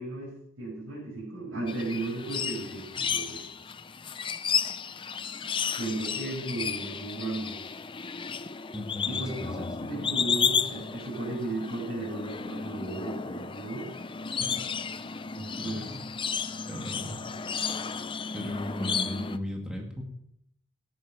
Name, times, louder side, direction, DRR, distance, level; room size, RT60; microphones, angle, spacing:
voice 1, 0.0-3.4 5.8-7.6 9.0-9.5 9.8-13.9 15.3-15.9, right 2 dB, 75° right, -6 dB, 6.0 m, -35 dB
sound 1, 1.7-19.4, left 6 dB, 25° left, 0.5 m, -33 dB
voice 2, 8.7-9.9 14.4-14.6 15.5-15.9 16.7-17.2 18.3-20.0, equal, 5° right, 0 dB, 2.2 m, -36 dB
14.5 x 11.0 x 5.6 m, 0.76 s
head